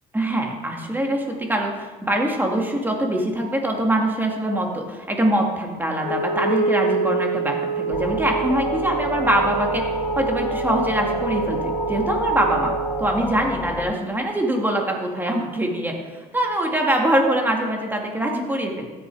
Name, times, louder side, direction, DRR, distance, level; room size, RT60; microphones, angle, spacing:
voice 1, 0.1-9.9 10.2-12.7 13.0-18.8, right 1 dB, 10° right, 1 dB, 2.5 m, -23 dB
Wind instrument woodwind instrument, 6.0-13.1, right 5 dB, 85° left, 1.7 m, -26 dB
sound 1, 7.9-13.9, left 3 dB, 15° left, 0.5 m, -30 dB
15.0 x 9.8 x 4.9 m, 1.4 s
cardioid pair, 110°, 17 cm